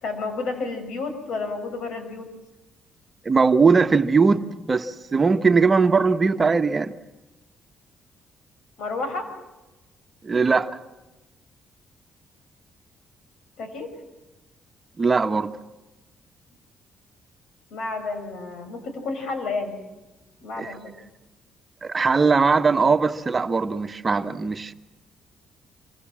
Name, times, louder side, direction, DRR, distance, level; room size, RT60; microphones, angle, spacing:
voice 1, 0.0-2.3 8.8-9.3 13.6-13.9 17.7-19.8 20.4-21.0, left 3 dB, 75° left, 6.0 m, -31 dB
voice 2, 3.2-6.9 10.2-10.8 15.0-15.5 20.6-20.8 21.8-24.7, right 4 dB, 30° right, 1.3 m, -20 dB
27.0 x 25.0 x 7.6 m
cardioid pair, 90°, 0 cm